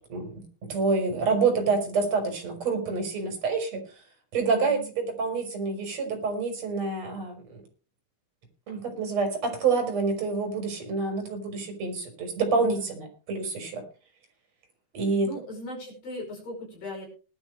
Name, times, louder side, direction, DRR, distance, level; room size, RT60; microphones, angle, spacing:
voice 1, 0.1-3.8 4.3-7.6 8.7-13.8 14.9-15.3, right 4 dB, 35° right, 4 dB, 5.0 m, -27 dB
voice 2, 4.5-4.9 12.5-12.9 15.2-17.1, left 1 dB, 45° left, 0 dB, 6.8 m, -39 dB
19.5 x 12.0 x 3.2 m, 0.34 s
omnidirectional pair, 5.9 m